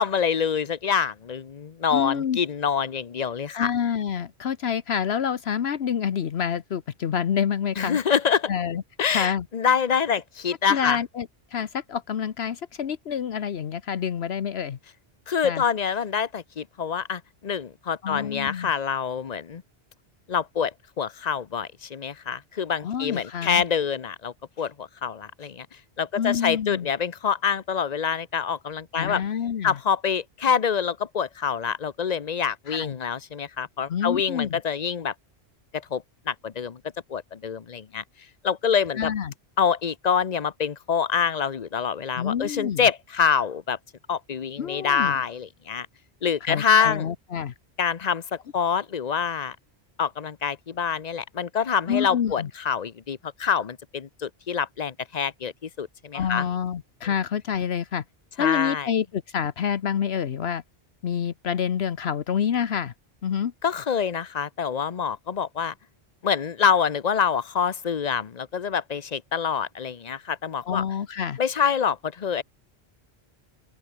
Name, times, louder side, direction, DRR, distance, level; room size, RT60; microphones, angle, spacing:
voice 1, 0.0-3.7 7.8-8.5 9.0-11.0 15.3-19.6 20.3-25.7 26.0-29.2 29.6-35.1 35.7-36.8 37.1-38.0 38.4-39.1 39.6-43.8 44.1-45.9 46.2-47.1 47.8-49.6 50.0-56.5 58.4-58.9 63.6-65.7 66.2-70.8 71.4-72.4, left 7 dB, 45° left, 0.9 m, -26 dB
voice 2, 1.9-2.4 3.5-8.0 8.4-8.8 9.1-9.5 10.7-14.8 15.4-15.6 18.0-18.7 22.8-23.6 26.2-26.9 29.0-29.8 32.7-33.0 33.9-34.6 39.0-39.3 42.2-42.8 44.6-45.1 46.5-47.5 51.9-52.5 56.1-58.0 58.4-60.6 61.0-62.9 63.2-63.5 70.6-71.4, left 8 dB, 75° left, 1.1 m, -27 dB
open air
omnidirectional pair, 1.1 m